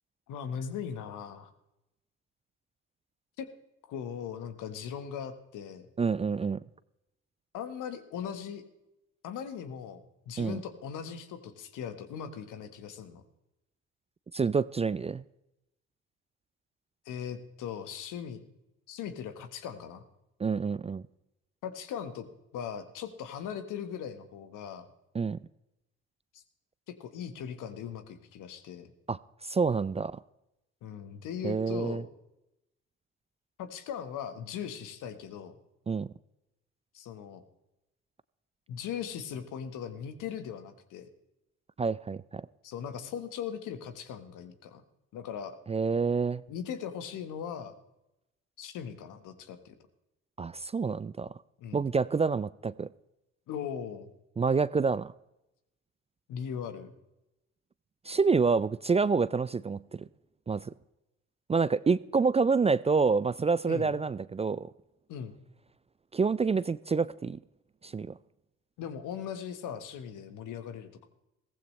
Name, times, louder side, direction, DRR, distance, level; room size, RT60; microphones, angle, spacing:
voice 1, 0.3-1.5 3.4-3.5 3.9-5.9 7.5-8.6 9.2-13.2 17.0-18.4 18.9-20.0 21.6-22.3 22.5-24.9 26.3-26.4 26.9-28.9 30.8-32.1 33.6-35.6 36.9-37.4 38.7-41.1 42.6-44.8 45.1-45.6 46.5-47.7 48.6-49.7 51.6-51.9 53.5-54.1 56.3-56.9 63.6-63.9 65.1-65.4 68.8-71.1, left 8 dB, 75° left, 9 dB, 1.4 m, -39 dB
voice 2, 6.0-6.6 10.4-10.6 14.3-15.2 20.4-21.0 25.1-25.4 29.1-30.2 31.4-32.0 35.9-36.1 41.8-42.5 45.7-46.4 50.4-51.3 51.7-52.9 54.4-55.1 58.1-60.0 60.5-60.7 61.5-64.7 66.1-67.4 67.8-68.1, right 5 dB, 20° right, 19 dB, 0.4 m, -27 dB
15.5 x 15.0 x 3.2 m, 0.90 s
hypercardioid pair, 55°, 31 cm